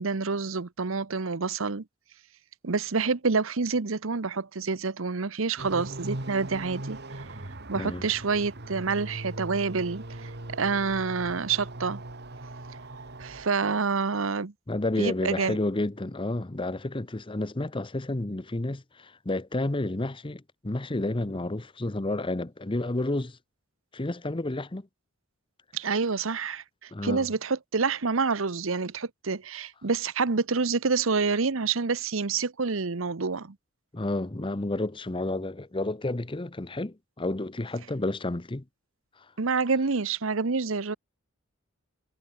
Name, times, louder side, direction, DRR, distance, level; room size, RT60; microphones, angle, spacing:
voice 1, 0.0-1.8 2.6-7.2 7.7-12.0 13.2-14.5 15.0-15.6 25.7-33.5 39.4-41.0, right 4 dB, 70° right, 0.9 m, -28 dB
sound 1, 5.6-13.5, right 1 dB, 50° right, 2.4 m, -40 dB
voice 2, 7.7-8.1 14.7-23.4 23.9-24.9 26.9-27.3 33.9-38.6, left 2 dB, 25° left, 0.9 m, -30 dB
head